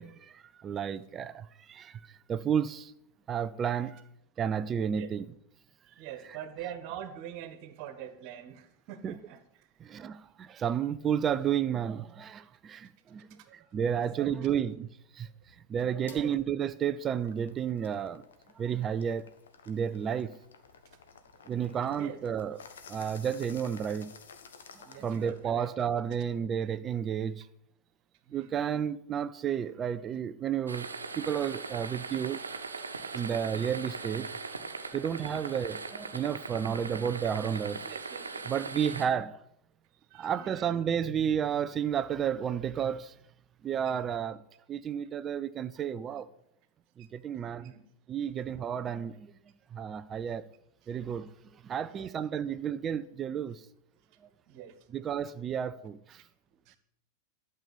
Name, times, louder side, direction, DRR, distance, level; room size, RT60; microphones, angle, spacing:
voice 1, 0.0-2.9 3.3-4.0 4.4-5.2 9.0-9.2 9.8-14.9 15.1-15.3 15.7-18.2 18.6-19.2 19.7-20.3 21.5-22.6 22.9-24.1 24.8-27.5 28.3-30.9 31.1-32.4 33.1-34.3 34.9-37.9 38.5-39.4 40.1-43.1 43.6-44.4 44.7-46.3 47.0-47.7 48.1-49.3 49.7-50.5 50.9-51.3 51.6-53.7 54.9-56.2, right 8 dB, 25° right, 0.5 m, -32 dB
voice 2, 5.9-10.1 13.3-13.8 14.2-14.6 15.6-15.7 16.0-16.3 20.2-20.3 22.0-22.2 24.8-25.7 28.2-28.6 32.7-33.2 37.8-38.5 40.1-40.8 47.0-47.1 47.4-47.8 50.8-50.9 52.0-52.1 54.0-54.1 54.4-54.8 56.1-56.2 56.6-56.8, right 10 dB, 45° right, 1.6 m, -45 dB
sound 1, 16.1-16.2 16.7-25.5, left 5 dB, 65° left, 1.4 m, -53 dB
sound 2, 30.7-39.1, right 4 dB, 75° right, 1.1 m, -40 dB
12.0 x 6.9 x 8.6 m
figure-of-eight pair, 90°, 0 cm